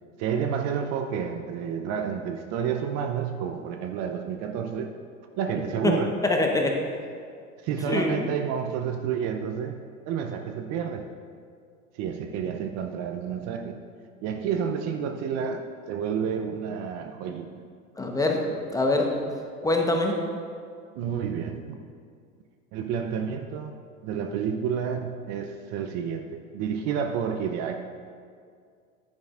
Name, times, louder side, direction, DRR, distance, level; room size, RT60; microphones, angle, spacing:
voice 1, 0.2-5.0 5.4-6.2 7.6-9.8 10.0-11.1 11.9-13.8 14.2-17.5 20.9-21.8 22.7-23.7 24.0-27.8, right 7 dB, 45° right, 5 dB, 0.6 m, -30 dB
voice 2, 6.2-6.8 7.9-8.3 18.0-18.4 18.7-19.2 19.6-20.2, left 2 dB, 10° left, 1 dB, 1.0 m, -24 dB
10.5 x 9.8 x 2.5 m, 2.2 s
hypercardioid pair, 95°, 39 cm